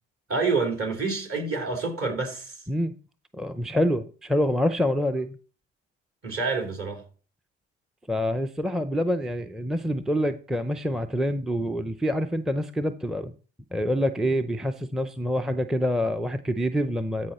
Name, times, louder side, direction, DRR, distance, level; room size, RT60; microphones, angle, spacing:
voice 1, 0.3-2.6 6.2-7.0, right 4 dB, 45° right, 3.7 m, -27 dB
voice 2, 3.3-5.4 8.1-13.3 13.7-17.3, equal, ahead, 0.5 m, -26 dB
14.0 x 4.8 x 4.3 m
hypercardioid pair, 65°, 31 cm